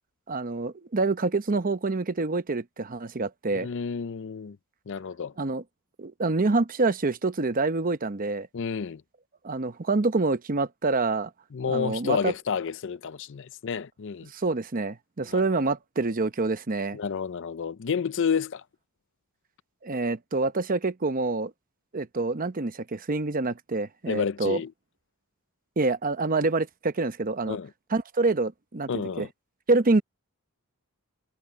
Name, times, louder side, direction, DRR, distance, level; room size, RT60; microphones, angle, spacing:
voice 1, 0.3-3.7 5.4-5.6 6.0-8.5 9.4-11.3 11.7-12.3 14.3-17.0 19.8-21.5 21.9-24.6 25.8-27.6 27.9-28.9 29.2-29.3 29.7-30.0, right 3 dB, 40° right, 0.8 m, -26 dB
voice 2, 3.5-4.6 4.9-5.3 8.5-9.0 11.5-14.3 15.2-15.4 16.9-18.6 24.0-24.7 27.5-27.7 28.9-29.3, left 6 dB, 60° left, 0.5 m, -30 dB
head